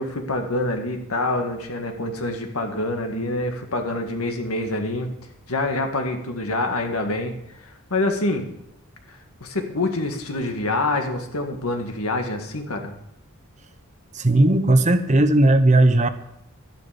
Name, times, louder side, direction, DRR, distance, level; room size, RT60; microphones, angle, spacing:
voice 1, 0.0-5.1 5.5-8.5 9.1-12.9, left 2 dB, 85° left, 4 dB, 1.8 m, -26 dB
voice 2, 14.1-16.1, right 1 dB, 35° right, 9 dB, 0.8 m, -16 dB
12.0 x 11.0 x 5.1 m, 0.77 s
head